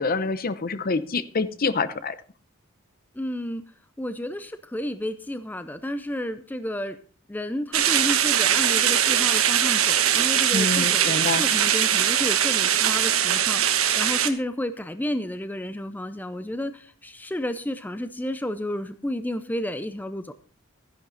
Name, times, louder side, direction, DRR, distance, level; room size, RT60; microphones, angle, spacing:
voice 1, 0.0-2.1 10.5-11.5, left 3 dB, 45° left, 14 dB, 0.8 m, -26 dB
voice 2, 3.2-3.6 4.0-7.0 7.3-20.3, left 1 dB, 10° left, 10 dB, 0.5 m, -31 dB
sound 1, 7.7-14.3, right 10 dB, 90° right, 1.2 m, -21 dB
13.5 x 10.5 x 4.1 m, 0.40 s
head